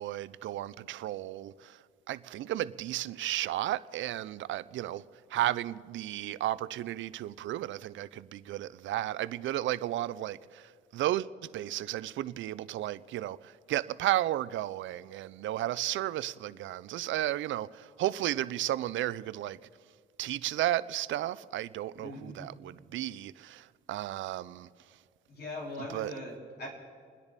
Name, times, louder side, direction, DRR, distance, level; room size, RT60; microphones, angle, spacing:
voice 1, 0.0-1.8 2.1-5.0 5.3-19.6 20.2-24.7 25.9-26.1, right 14 dB, 75° right, 0.5 m, -33 dB
voice 2, 22.0-22.5 25.3-26.7, left 1 dB, 55° left, 4.4 m, -41 dB
29.5 x 10.5 x 4.1 m
cardioid pair, 90°, 20 cm